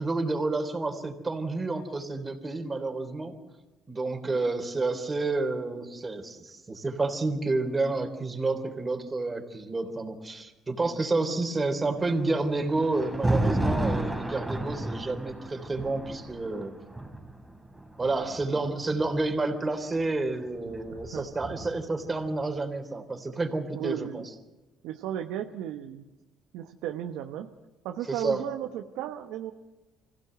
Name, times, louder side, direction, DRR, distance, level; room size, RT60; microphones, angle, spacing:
voice 1, 0.0-3.4 3.9-16.7 18.0-24.2 28.1-28.4, right 3 dB, 25° right, 5 dB, 3.6 m, -30 dB
Thunder, 12.0-19.2 20.3-22.0, right 1 dB, 5° right, 3.4 m, -32 dB
voice 2, 18.0-18.3 20.9-21.6 23.3-23.4 23.7-24.3 24.8-26.1 26.5-27.5 27.8-29.5, right 11 dB, 80° right, 5 dB, 1.0 m, -35 dB
25.0 x 16.5 x 8.0 m, 1.1 s
supercardioid pair, 85°, 0 cm